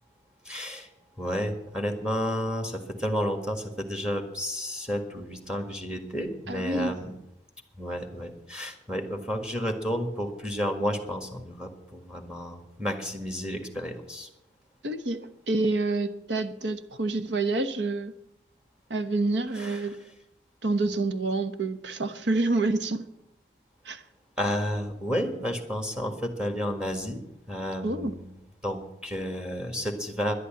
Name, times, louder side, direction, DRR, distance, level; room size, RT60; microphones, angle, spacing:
voice 1, 0.4-0.9 1.2-7.2 7.8-14.3 19.6-19.8 24.4-27.2 27.5-28.3 28.6-30.3, equal, 5° right, 1.7 m, -31 dB
voice 2, 6.5-6.9 14.8-18.1 18.9-20.0 20.6-23.1 23.8-24.0 27.8-28.2, right 2 dB, 75° right, 1.1 m, -28 dB
11.5 x 11.0 x 8.7 m
head